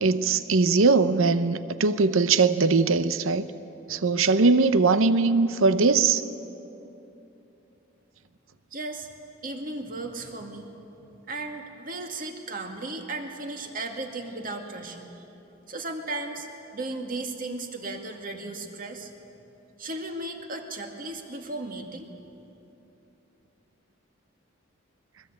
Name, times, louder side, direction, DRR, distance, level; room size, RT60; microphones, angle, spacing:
voice 1, 0.0-3.5 3.9-6.2, right 4 dB, 75° right, 12 dB, 0.8 m, -21 dB
voice 2, 8.7-9.1 9.4-10.7 11.3-15.2 15.7-19.1 19.8-22.1, right 2 dB, 40° right, 3 dB, 2.1 m, -35 dB
22.5 x 20.5 x 8.7 m, 2.9 s
head